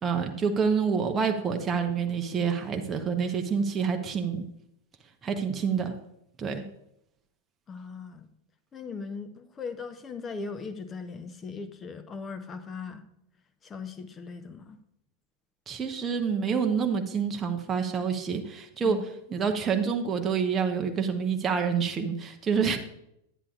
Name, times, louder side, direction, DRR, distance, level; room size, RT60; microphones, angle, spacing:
voice 1, 0.0-4.4 5.2-5.9 6.4-6.6 15.7-19.0 19.3-22.8, right 6 dB, 20° right, 3 dB, 0.8 m, -27 dB
voice 2, 7.7-8.3 8.7-13.0 13.6-14.8 18.8-19.0, left 4 dB, 20° left, 10 dB, 0.8 m, -39 dB
11.0 x 9.9 x 2.4 m, 0.78 s
figure-of-eight pair, 90°, 0 cm